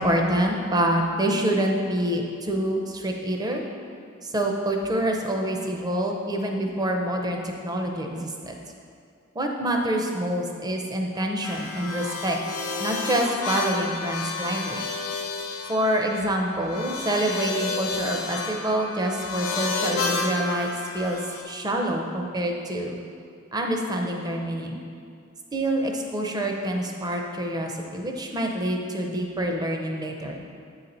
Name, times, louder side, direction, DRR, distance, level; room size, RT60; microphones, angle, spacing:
voice 1, 0.0-3.6 4.2-8.5 9.3-12.4 12.8-14.8 15.7-20.7 20.9-21.2 21.4-23.0 23.5-24.8 25.5-30.4, right 1 dB, 20° right, 2 dB, 0.5 m, -26 dB
sound 1, 11.4-21.4, left 3 dB, 90° left, 0.7 m, -31 dB
8.2 x 4.0 x 4.3 m, 2.3 s
head